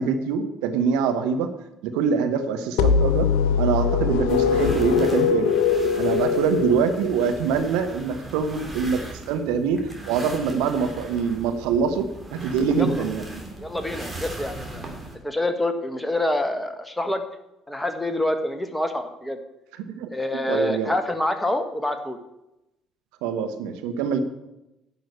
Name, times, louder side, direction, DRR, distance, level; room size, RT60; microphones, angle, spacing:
voice 1, 0.0-1.5 1.8-3.3 3.6-5.5 6.0-13.3 19.9-20.1 20.5-20.9 23.2-24.2, right 6 dB, 65° right, 7 dB, 1.0 m, -24 dB
sound 1, 2.8-7.5, left 6 dB, 65° left, 0.9 m, -22 dB
sound 2, 4.3-15.2, right 2 dB, 15° right, 3.3 m, -39 dB
voice 2, 13.6-14.8 15.2-17.2 17.7-19.4 20.1-22.2, left 1 dB, 5° left, 7 dB, 1.6 m, -26 dB
11.0 x 6.2 x 8.5 m, 0.90 s
figure-of-eight pair, 50°, 0 cm